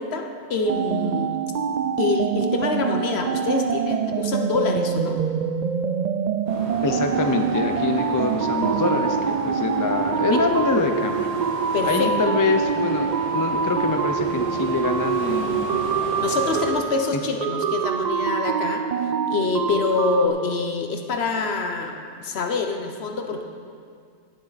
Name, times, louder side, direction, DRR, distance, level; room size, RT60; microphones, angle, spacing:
voice 1, 0.0-1.3 2.0-5.2 10.3-10.4 11.7-12.1 16.2-18.8 19.3-23.4, left 4 dB, 60° left, 4 dB, 1.1 m, -25 dB
sound 1, 0.7-20.3, right 7 dB, 65° right, 0.4 m, -25 dB
sound 2, 6.5-16.7, equal, 45° left, 3.1 m, -35 dB
voice 2, 6.8-11.3 11.8-15.7 17.1-17.2, left 3 dB, 25° left, 5 dB, 0.4 m, -25 dB
16.5 x 7.5 x 4.1 m, 2.2 s
omnidirectional pair, 1.2 m